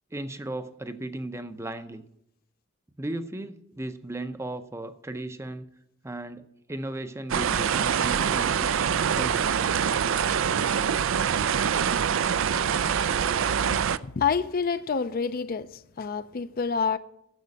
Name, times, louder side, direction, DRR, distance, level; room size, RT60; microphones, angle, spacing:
voice 1, 0.1-2.0 3.0-5.7 6.0-9.6, right 2 dB, 10° right, 0.6 m, -36 dB
sound 1, 7.3-14.0, right 7 dB, 65° right, 0.4 m, -25 dB
voice 2, 13.7-17.0, left 6 dB, 40° left, 0.5 m, -28 dB
10.5 x 7.6 x 8.3 m
head